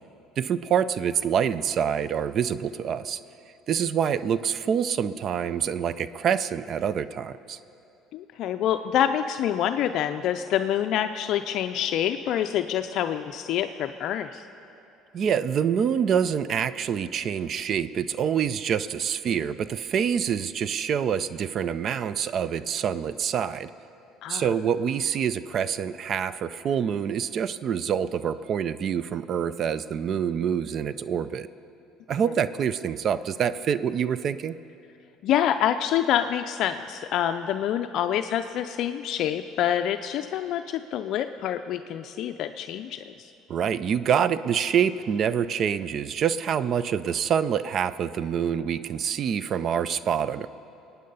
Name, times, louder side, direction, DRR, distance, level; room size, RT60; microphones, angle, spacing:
voice 1, 0.4-3.2 3.7-7.6 15.1-23.7 24.3-31.5 32.1-34.5 43.5-50.5, right 8 dB, 45° right, 15 dB, 0.4 m, -26 dB
voice 2, 8.1-14.5 24.2-24.5 35.2-43.3, left 10 dB, 60° left, 8 dB, 0.4 m, -26 dB
22.0 x 9.4 x 5.5 m, 2.8 s
cardioid pair, 115°, 0 cm